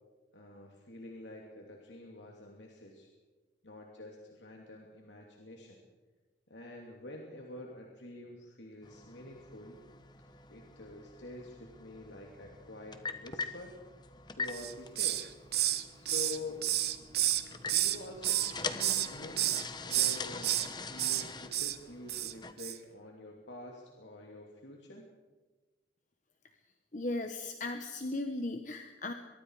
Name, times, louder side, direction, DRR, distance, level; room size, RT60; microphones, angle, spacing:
voice 1, 0.3-3.1 3.6-5.8 6.5-9.8 10.5-13.7 14.3-15.3 16.0-16.6 17.5-25.1, left 2 dB, 85° left, 0 dB, 3.0 m, -47 dB
sound 1, 8.8-22.5, left 4 dB, 25° left, 1.2 m, -44 dB
Hiss, 14.5-15.3 15.5-18.0 18.2-19.1 19.4-19.6 19.9-20.7 21.0-21.2 21.5-21.8 22.1-22.3 22.6-22.8, right 13 dB, 60° right, 1.2 m, -30 dB
voice 2, 26.9-29.1, left 2 dB, 45° left, 6 dB, 1.2 m, -36 dB
23.5 x 22.5 x 4.9 m, 1.2 s
head